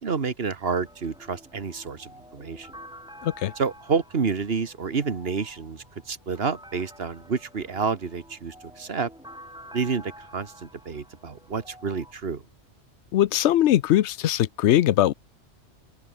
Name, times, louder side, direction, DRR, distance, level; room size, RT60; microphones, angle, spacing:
voice 1, 0.0-2.7 3.6-9.1 9.7-12.4, right 5 dB, 60° right, 1.7 m, -29 dB
sound 1, 0.8-12.1, equal, 5° right, 2.7 m, -49 dB
voice 2, 13.1-15.1, left 12 dB, 75° left, 0.9 m, -21 dB
open air
omnidirectional pair, 1.2 m